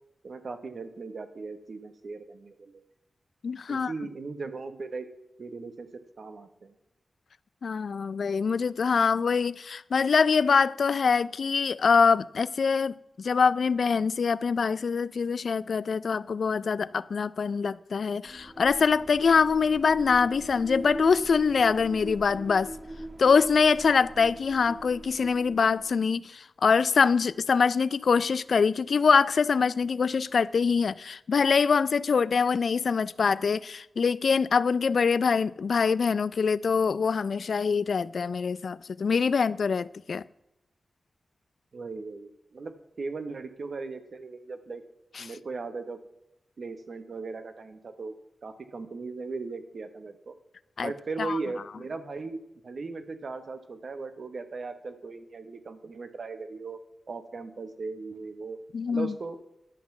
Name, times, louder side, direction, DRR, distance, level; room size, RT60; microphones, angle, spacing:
voice 1, 0.2-2.8 3.7-5.1 5.4-5.9 6.2-6.7 41.7-42.7 43.0-44.8 45.2-46.0 46.6-48.1 48.4-50.3 50.8-56.8 57.1-58.6 58.9-59.4, right 4 dB, 65° right, 1.2 m, -38 dB
voice 2, 3.4-3.9 7.6-22.7 23.2-40.2 45.2-45.3 50.8-50.9 51.2-51.4 58.7-59.1, left 5 dB, 70° left, 0.3 m, -24 dB
sound 1, 18.2-26.0, right 1 dB, 25° right, 0.9 m, -41 dB
11.5 x 6.0 x 7.1 m
wide cardioid pair, 90°, 0 cm